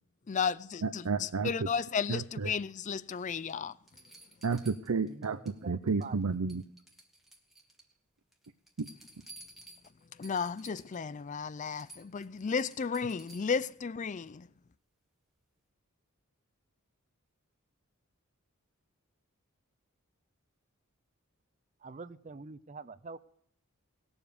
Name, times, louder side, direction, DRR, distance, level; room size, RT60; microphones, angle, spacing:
voice 1, 0.3-3.7 10.2-14.5, left 6 dB, 35° left, 0.4 m, -34 dB
voice 2, 0.8-1.7 2.1-2.6 4.4-6.6 8.8-8.9, right 4 dB, 90° right, 0.6 m, -32 dB
sound 1, 3.2-3.3 3.9-5.6 5.9-6.2 6.5-7.9 8.3-11.0 11.4-11.5 11.8-13.7 15.4-15.5, right 2 dB, ahead, 1.4 m, -55 dB
voice 3, 5.0-6.2 21.8-23.2, right 4 dB, 35° right, 0.5 m, -46 dB
19.5 x 7.2 x 5.0 m
head